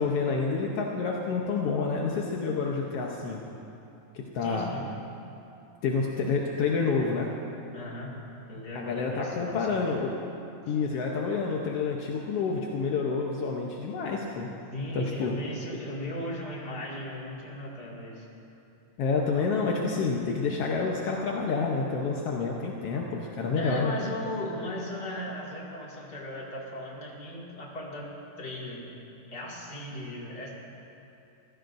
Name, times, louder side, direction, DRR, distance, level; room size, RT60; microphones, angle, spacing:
voice 1, 0.0-3.4 4.1-4.7 5.8-7.3 8.7-10.1 10.7-14.5 14.9-15.3 19.0-23.9, left 4 dB, 70° left, -1 dB, 1.4 m, -28 dB
voice 2, 4.4-4.9 7.7-8.1 8.5-9.9 10.7-10.8 14.7-18.3 23.5-28.9 29.3-30.5, left 1 dB, 35° left, -4 dB, 2.5 m, -37 dB
25.5 x 16.0 x 2.6 m, 2.8 s
omnidirectional pair, 3.8 m